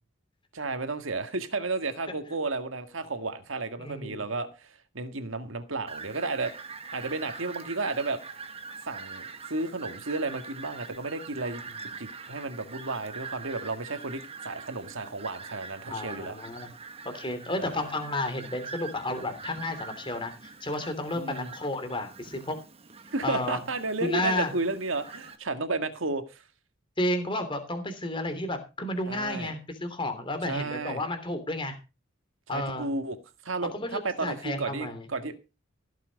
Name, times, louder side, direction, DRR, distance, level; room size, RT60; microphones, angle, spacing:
voice 1, 0.5-6.5 6.9-8.2 8.9-16.3 17.6-17.9 21.2-21.5 23.1-26.4 29.1-29.6 30.4-31.1 32.5-33.2 33.4-35.4, right 3 dB, 75° right, 1.8 m, -33 dB
voice 2, 3.8-4.2 15.9-16.7 17.0-20.3 20.6-22.6 23.2-23.6 24.0-24.5 27.0-31.8 32.5-32.9 33.7-35.1, left 1 dB, 25° left, 3.1 m, -32 dB
Fowl, 5.9-25.4, right 5 dB, 30° right, 1.5 m, -44 dB
16.0 x 7.6 x 5.2 m
head